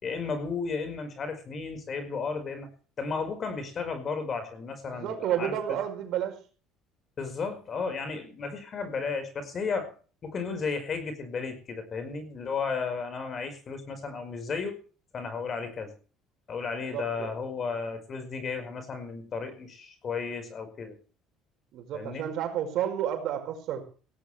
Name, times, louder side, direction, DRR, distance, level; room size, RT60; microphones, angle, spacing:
voice 1, 0.0-2.7 3.0-5.5 7.2-9.9 10.2-14.8 15.1-15.9 16.5-21.0 21.9-22.3, left 5 dB, 35° left, 8 dB, 5.1 m, -34 dB
voice 2, 4.9-6.4 16.9-17.3 21.7-23.8, right 10 dB, 60° right, 5 dB, 5.1 m, -31 dB
17.5 x 17.0 x 3.4 m, 0.38 s
cardioid pair, 135°, 0 cm